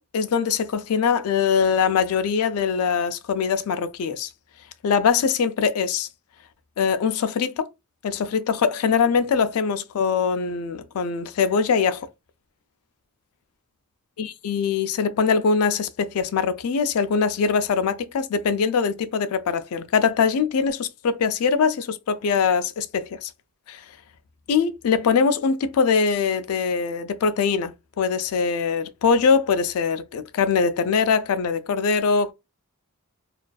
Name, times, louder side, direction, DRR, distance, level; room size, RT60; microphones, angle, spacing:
voice 1, 0.0-4.3 4.8-6.1 6.8-7.7 8.0-12.1 14.2-23.3 23.7-23.8 24.5-32.3, left 6 dB, 75° left, 0.4 m, -22 dB
2.4 x 2.3 x 2.2 m
head